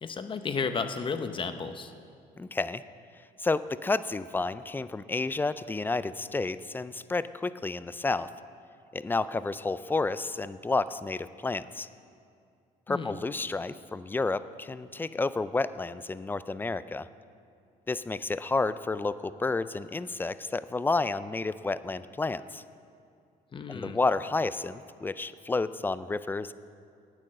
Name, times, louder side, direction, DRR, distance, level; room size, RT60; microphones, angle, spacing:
voice 1, 0.0-1.9 12.9-13.2 23.5-24.0, left 5 dB, 30° left, 9 dB, 0.8 m, -33 dB
voice 2, 2.4-2.8 3.4-8.3 8.9-11.9 12.9-17.1 17.9-22.6 23.7-26.5, left 3 dB, 10° left, 15 dB, 0.3 m, -30 dB
10.5 x 9.0 x 7.5 m, 2.4 s
cardioid pair, 110°, 17 cm